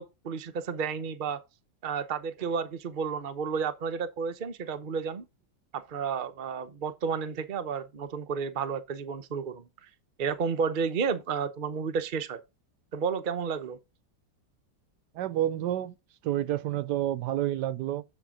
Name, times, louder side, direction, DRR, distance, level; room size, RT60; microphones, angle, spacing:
voice 1, 0.0-1.4 1.8-5.2 5.7-9.6 10.2-12.4 12.9-13.8, right 6 dB, 40° right, 0.7 m, -31 dB
voice 2, 15.1-15.9 16.2-18.0, right 12 dB, 75° right, 1.2 m, -29 dB
12.0 x 4.3 x 5.1 m
omnidirectional pair, 1.9 m